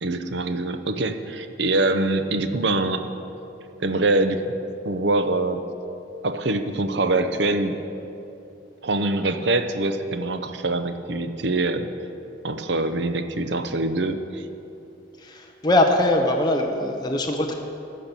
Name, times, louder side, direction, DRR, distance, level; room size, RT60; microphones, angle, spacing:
voice 1, 0.0-3.1 3.8-4.4 4.8-5.6 6.2-7.8 8.8-11.9 12.4-14.5, right 2 dB, 65° right, 9 dB, 0.7 m, -24 dB
voice 2, 15.2-17.5, left 1 dB, 20° left, 2 dB, 0.7 m, -21 dB
14.5 x 5.9 x 6.8 m, 2.8 s
head